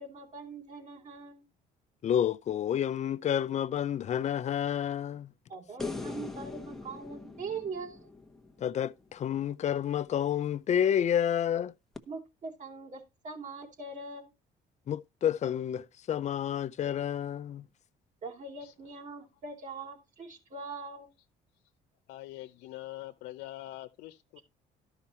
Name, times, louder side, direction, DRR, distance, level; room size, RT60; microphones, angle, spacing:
voice 1, 0.0-1.4 5.5-8.1 12.1-14.3 18.2-21.1, right 4 dB, 45° right, 4.3 m, -42 dB
voice 2, 2.0-5.3 8.6-11.7 14.9-17.7, left 9 dB, 45° left, 0.6 m, -29 dB
sound 1, 5.8-9.1 12.0-12.1, left 3 dB, ahead, 1.2 m, -41 dB
voice 3, 22.1-24.4, left 16 dB, 85° left, 0.8 m, -44 dB
12.5 x 5.7 x 4.3 m
cardioid pair, 110°, 17 cm